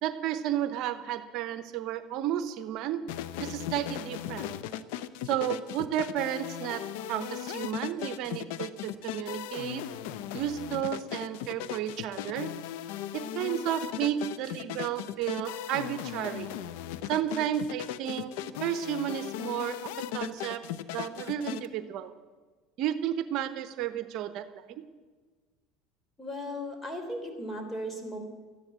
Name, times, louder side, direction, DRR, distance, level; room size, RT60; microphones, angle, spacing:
voice 1, 0.0-3.0 3.4-4.5 5.2-6.8 7.1-9.8 10.3-12.5 13.1-16.5 17.1-18.3 18.6-19.8 20.1-20.6 20.9-22.1 22.8-24.5, right 11 dB, 60° right, 12 dB, 0.9 m, -32 dB
sound 1, 3.1-21.7, left 11 dB, 75° left, 0.7 m, -37 dB
voice 2, 26.2-28.2, equal, 15° left, 5 dB, 3.6 m, -36 dB
13.5 x 10.5 x 8.7 m, 1.4 s
supercardioid pair, 100°, 0 cm